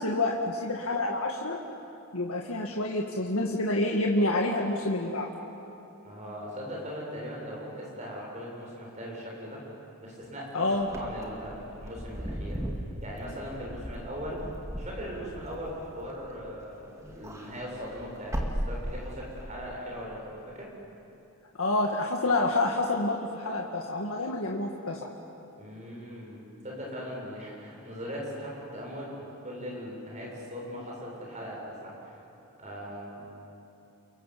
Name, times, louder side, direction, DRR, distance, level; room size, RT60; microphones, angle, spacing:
voice 1, 0.0-1.6 2.1-5.3 10.5-10.9 21.5-25.0, left 2 dB, 75° left, 0 dB, 1.8 m, -28 dB
voice 2, 6.0-9.6 10.0-10.7 10.9-12.6 13.0-14.5 14.8-20.7 25.6-32.1 32.6-33.2, equal, 30° right, -3 dB, 7.2 m, -39 dB
Wind / Car, 10.8-16.6 17.0-19.4, equal, 15° right, 2.3 m, -37 dB
29.5 x 24.0 x 7.6 m, 2.9 s
head